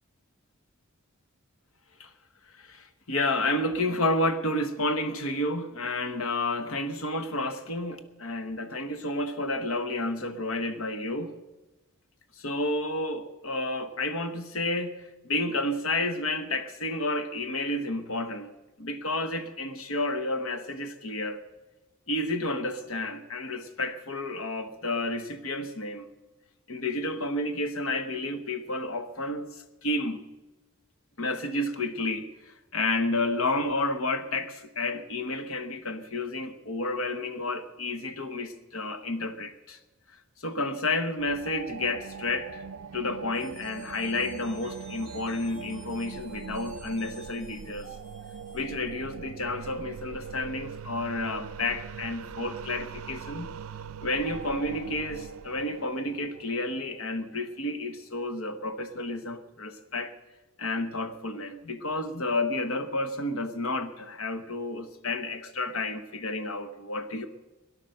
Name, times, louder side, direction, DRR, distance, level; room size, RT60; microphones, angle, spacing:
voice 1, 2.5-11.4 12.4-18.5 18.8-21.4 22.1-26.1 26.7-30.2 31.2-39.8 40.4-42.6 42.9-47.9 48.5-53.6 54.0-60.1 60.6-67.3, left 2 dB, 70° left, 9 dB, 1.1 m, -31 dB
sound 1, 41.2-57.4, right 6 dB, 80° right, 0.4 m, -42 dB
sound 2, 43.3-49.1, left 1 dB, 30° left, 2.5 m, -54 dB
17.0 x 11.5 x 6.6 m, 1.1 s
head